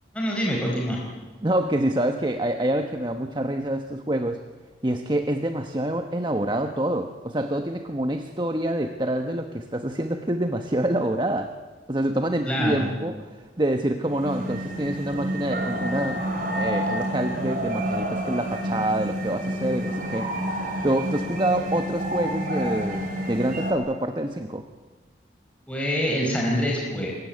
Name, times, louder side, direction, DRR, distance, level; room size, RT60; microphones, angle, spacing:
voice 1, 0.1-1.0 12.5-12.9 25.7-27.1, equal, 5° left, -2 dB, 4.7 m, -25 dB
voice 2, 1.4-4.4 4.8-11.6 11.9-20.3 20.8-24.6, right 1 dB, 25° right, 6 dB, 1.1 m, -26 dB
sound 1, 14.0-23.7, equal, 50° right, 6.2 m, -29 dB
27.0 x 22.5 x 9.4 m, 1.4 s
head